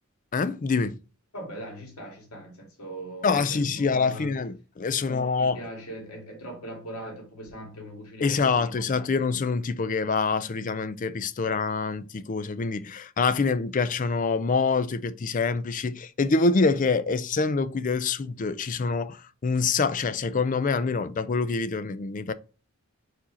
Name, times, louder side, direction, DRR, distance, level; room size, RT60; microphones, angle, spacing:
voice 1, 0.3-1.0 3.2-5.6 8.2-22.3, left 4 dB, 35° left, 0.4 m, -26 dB
voice 2, 1.3-4.3 5.0-9.2, right 1 dB, 90° left, 2.2 m, -41 dB
4.8 x 4.3 x 4.8 m
head